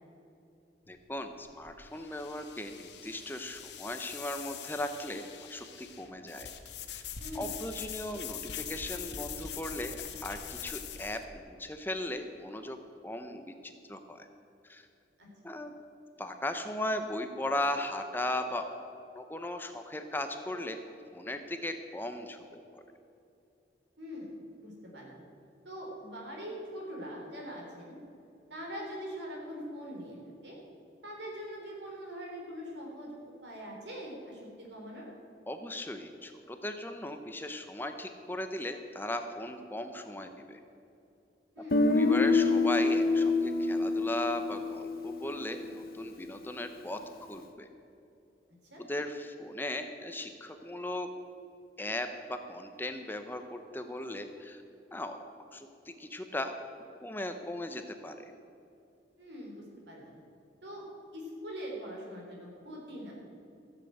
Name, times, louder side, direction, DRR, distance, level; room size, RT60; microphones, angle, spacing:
sound 1, 0.9-11.2, left 8 dB, 75° left, 1.1 m, -43 dB
voice 1, 0.9-6.5 6.9-7.0 7.3-11.2 11.5-12.8 13.0-14.3 14.6-14.8 15.4-15.7 16.2-18.7 19.1-20.8 21.1-22.8 35.5-40.6 41.8-47.7 48.8-51.1 51.8-54.6 54.9-55.2 55.5-56.5 57.0-58.3, left 1 dB, 10° left, 7 dB, 0.7 m, -37 dB
voice 2, 7.2-7.5 15.2-15.3 24.0-24.3 24.5-25.2 25.6-28.0 28.5-30.2 30.4-30.6 31.0-35.1 41.6-41.8 48.7-48.8 59.2-60.2 60.6-60.8 61.1-63.1, equal, 85° right, -1 dB, 4.0 m, -42 dB
Guitar, 41.7-45.7, left 3 dB, 55° left, 0.9 m, -27 dB
15.5 x 7.9 x 7.9 m, 2.7 s
head